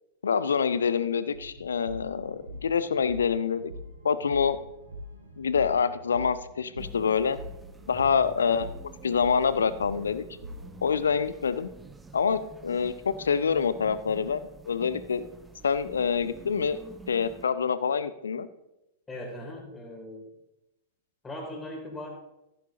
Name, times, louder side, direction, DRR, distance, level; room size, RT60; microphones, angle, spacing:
voice 1, 0.2-3.7 4.0-4.6 5.4-7.4 7.9-8.7 9.0-10.2 10.8-11.7 12.1-15.3 15.6-16.8 17.1-18.5, left 6 dB, 70° left, 15 dB, 0.6 m, -26 dB
sound 1, 1.3-10.9, equal, 80° right, 2.2 m, -44 dB
sound 2, 6.8-17.5, right 4 dB, 10° right, 0.7 m, -49 dB
voice 2, 19.1-20.3 21.2-22.1, left 1 dB, 15° left, 0 dB, 3.1 m, -39 dB
15.0 x 10.0 x 2.8 m, 0.89 s
figure-of-eight pair, 100°, 0 cm